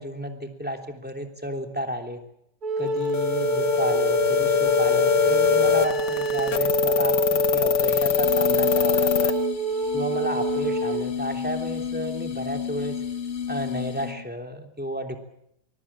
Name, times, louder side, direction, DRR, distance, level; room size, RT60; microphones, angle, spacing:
voice 1, 0.0-2.2 2.8-9.3 9.9-13.0 13.5-15.2, equal, 5° right, 4 dB, 3.1 m, -32 dB
Wind instrument woodwind instrument, 2.6-11.1, right 5 dB, 65° right, 2.6 m, -27 dB
sound 1, 3.1-9.3, left 10 dB, 85° left, 1.9 m, -23 dB
sound 2, 7.8-14.3, left 8 dB, 45° left, 1.4 m, -32 dB
23.5 x 22.0 x 8.8 m, 0.76 s
omnidirectional pair, 1.8 m